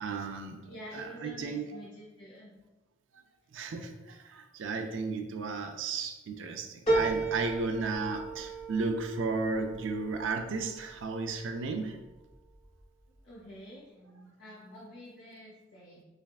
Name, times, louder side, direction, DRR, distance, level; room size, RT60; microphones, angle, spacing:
voice 1, 0.0-0.6 0.9-1.8 3.5-12.0, right 4 dB, 85° right, 5 dB, 0.4 m, -34 dB
voice 2, 0.7-2.5 13.2-16.0, equal, 70° left, -6 dB, 0.7 m, -48 dB
sound 1, 6.9-11.6 12.1-12.8 13.2-13.3, right 3 dB, 35° left, 0.9 m, -34 dB
3.4 x 3.4 x 2.4 m, 1.1 s
head